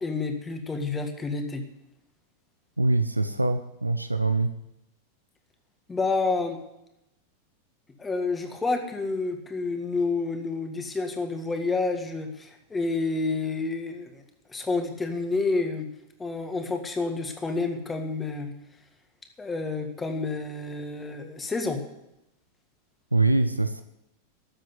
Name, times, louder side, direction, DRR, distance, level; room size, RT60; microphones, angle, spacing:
voice 1, 0.0-1.6 5.9-6.6 8.0-15.9 16.2-18.5 19.4-21.8, left 3 dB, 15° left, 5 dB, 1.9 m, -29 dB
voice 2, 2.8-4.5 23.1-23.8, right 2 dB, 85° right, 10 dB, 0.6 m, -24 dB
13.0 x 7.5 x 9.6 m, 0.87 s
figure-of-eight pair, 90°, 0 cm